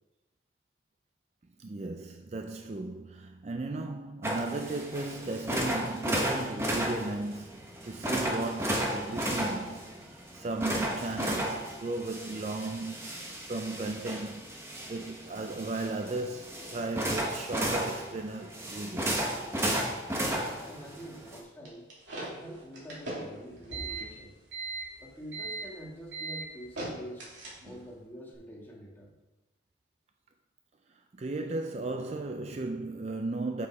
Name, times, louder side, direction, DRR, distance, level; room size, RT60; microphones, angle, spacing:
voice 1, 1.6-13.1 13.5-14.5 14.9-19.2 31.1-33.7, right 2 dB, 35° right, 0.4 m, -36 dB
sound 1, 4.2-21.4, right 1 dB, 15° right, 1.0 m, -34 dB
voice 2, 20.1-21.9 22.3-24.4 25.0-27.3 27.6-29.1, equal, 10° left, 1.5 m, -46 dB
sound 2, 21.7-27.9, right 3 dB, 75° right, 2.7 m, -39 dB
7.1 x 6.7 x 4.8 m
head